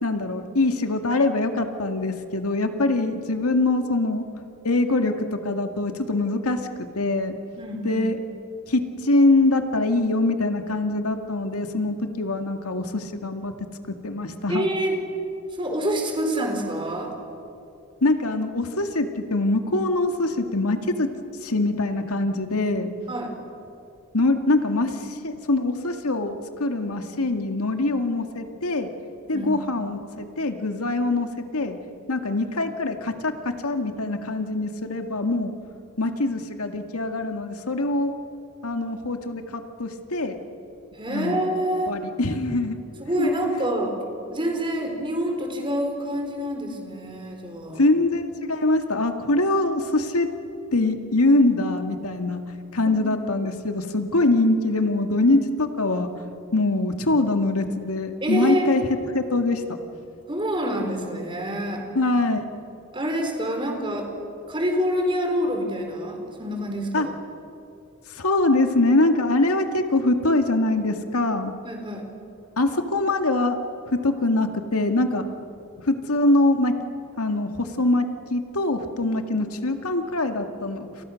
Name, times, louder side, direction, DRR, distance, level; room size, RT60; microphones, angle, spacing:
voice 1, 0.0-4.2 4.6-6.6 7.0-7.4 7.8-8.2 8.7-13.5 13.9-14.7 18.0-21.1 21.4-22.9 24.1-28.9 29.3-31.8 32.1-35.5 36.0-38.2 38.6-40.4 41.1-41.4 41.8-42.8 43.2-43.3 47.8-50.3 50.7-52.4 52.7-56.1 56.5-58.8 59.1-59.6 62.0-62.4 66.9-67.1 68.2-71.5 72.6-73.6 73.9-75.2 75.8-76.7 77.2-81.0, left 2 dB, 85° left, 6 dB, 2.1 m, -23 dB
voice 2, 7.6-8.1 14.5-15.0 15.5-17.1 23.1-23.3 29.3-29.5 40.9-41.9 43.0-44.0 44.3-47.8 52.8-53.0 58.2-58.7 60.3-61.9 62.9-64.1 64.5-67.1 71.6-72.1, equal, 25° right, 3 dB, 4.1 m, -27 dB
30.0 x 28.5 x 6.5 m, 2.7 s
head